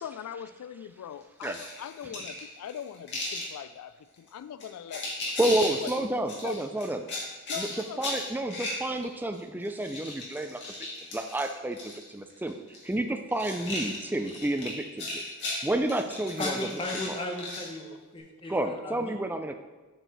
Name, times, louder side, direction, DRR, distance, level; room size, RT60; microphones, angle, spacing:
voice 1, 0.0-5.1 5.5-6.1 6.4-6.6 7.5-8.2 14.6-14.7, left 9 dB, 90° left, 14 dB, 0.3 m, -41 dB
sound 1, 1.4-3.5 4.2-4.3 4.6-5.9 6.3-9.4 9.6-12.0 12.3-12.9 13.3-17.7, left 2 dB, 55° left, 1.9 m, -36 dB
voice 2, 5.4-7.0 7.6-7.7 8.0-10.6 11.1-11.8 12.1-12.5 12.8-15.2 15.6-16.6 17.1-17.2 18.5-19.5, right 1 dB, 10° right, 6 dB, 0.4 m, -30 dB
voice 3, 16.4-19.2, left 1 dB, 25° left, 1 dB, 0.9 m, -36 dB
7.6 x 4.6 x 4.0 m, 1.2 s
head